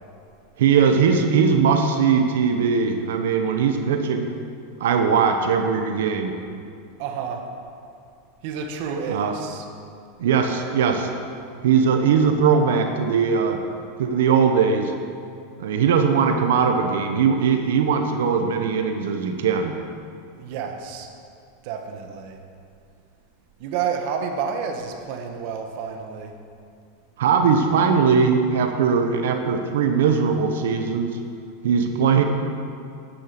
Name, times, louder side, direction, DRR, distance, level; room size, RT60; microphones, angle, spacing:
voice 1, 0.6-4.3 4.8-6.3 9.1-9.3 10.2-11.1 11.6-13.6 14.0-14.9 15.6-19.8 27.2-31.1 31.6-32.2, right 6 dB, 85° right, 5 dB, 1.2 m, -20 dB
voice 2, 7.0-7.5 8.4-9.7 20.4-21.1 21.6-22.4 23.6-26.4, right 6 dB, 55° right, 4 dB, 1.6 m, -30 dB
12.0 x 10.5 x 6.1 m, 2.4 s
supercardioid pair, 140°, 0 cm